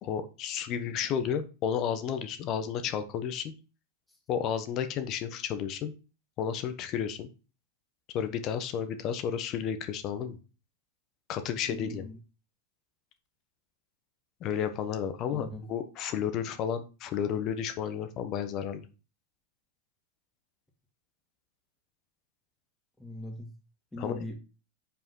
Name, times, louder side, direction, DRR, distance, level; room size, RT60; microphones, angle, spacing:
voice 1, 0.0-3.5 4.3-5.9 6.4-7.3 8.1-10.4 11.3-12.1 14.4-18.8 24.0-24.2, left 8 dB, 45° left, 9 dB, 1.2 m, -32 dB
voice 2, 11.7-12.2 15.3-15.7 23.0-23.5 23.9-24.4, left 1 dB, 5° left, 1 dB, 2.3 m, -40 dB
5.7 x 4.7 x 5.8 m, 0.33 s
hypercardioid pair, 100°, 0 cm